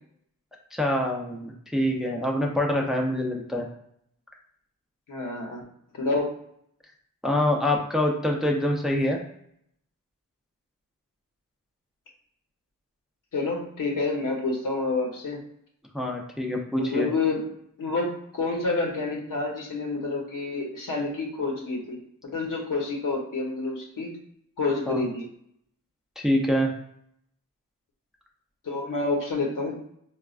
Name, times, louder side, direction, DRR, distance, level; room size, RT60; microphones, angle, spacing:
voice 1, 0.7-3.7 7.2-9.2 15.9-17.1 24.9-25.0 26.2-26.7, left 1 dB, ahead, 0 dB, 0.5 m, -25 dB
voice 2, 5.1-5.6 5.9-6.3 13.3-15.4 16.7-17.5 17.8-22.0 22.3-24.1 24.6-25.2 28.6-29.8, left 3 dB, 75° left, 0 dB, 0.8 m, -28 dB
3.9 x 2.3 x 2.4 m, 0.69 s
cardioid pair, 55°, 33 cm